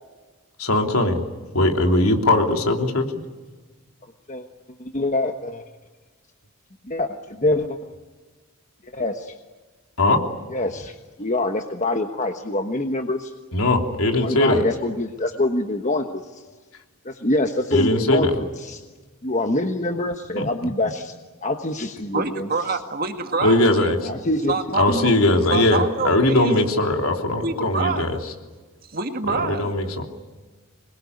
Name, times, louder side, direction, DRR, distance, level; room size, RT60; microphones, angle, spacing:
voice 1, 0.6-1.2 1.5-3.0 10.0-10.2 13.5-14.6 17.7-18.3 20.4-20.5 23.4-24.2 24.7-28.2 29.3-30.0, left 2 dB, 80° left, 3 dB, 3.2 m, -20 dB
voice 2, 4.8-5.6 6.8-7.8 8.9-9.3 10.5-13.3 14.2-16.4 17.0-18.8 19.2-21.1 21.4-22.5 24.0-24.5 24.9-25.1 25.5-25.6, left 2 dB, 35° left, 5 dB, 1.2 m, -25 dB
voice 3, 22.1-23.9 24.5-25.2 25.5-26.5 27.4-28.2 28.9-29.7, right 4 dB, 40° right, 6 dB, 2.0 m, -26 dB
27.0 x 21.5 x 9.6 m, 1.3 s
head